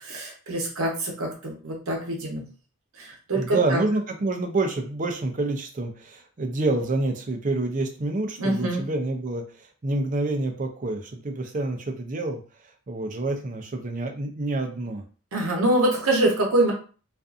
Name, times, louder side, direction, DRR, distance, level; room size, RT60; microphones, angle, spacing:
voice 1, 0.0-2.4 3.0-3.8 8.4-8.9 15.3-16.7, right 1 dB, 80° right, 0 dB, 0.8 m, -25 dB
voice 2, 3.3-12.4 12.9-15.0, right 2 dB, 35° right, 4 dB, 0.4 m, -27 dB
2.5 x 2.4 x 2.4 m, 0.38 s
head